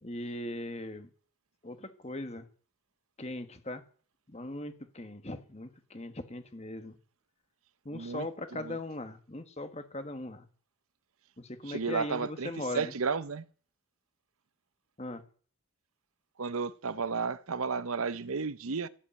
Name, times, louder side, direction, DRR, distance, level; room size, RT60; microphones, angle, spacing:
voice 1, 0.0-1.1 1.6-2.4 3.2-3.8 4.3-7.0 7.8-10.4 11.4-12.9 15.0-15.2, left 1 dB, 30° left, 1.4 m, -39 dB
voice 2, 7.9-8.8 11.7-13.4 16.4-18.9, right 5 dB, 80° right, 0.8 m, -33 dB
14.5 x 8.5 x 8.7 m
head